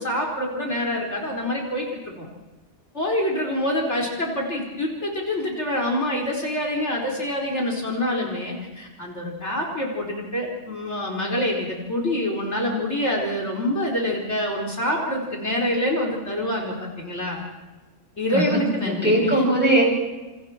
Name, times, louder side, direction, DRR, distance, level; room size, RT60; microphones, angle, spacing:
voice 1, 0.0-2.3 2.9-17.4 18.2-19.4, left 1 dB, 55° left, -1 dB, 4.8 m, -26 dB
voice 2, 18.3-19.8, right 1 dB, 5° right, -1 dB, 7.3 m, -20 dB
30.0 x 28.5 x 4.5 m, 1.2 s
omnidirectional pair, 1.4 m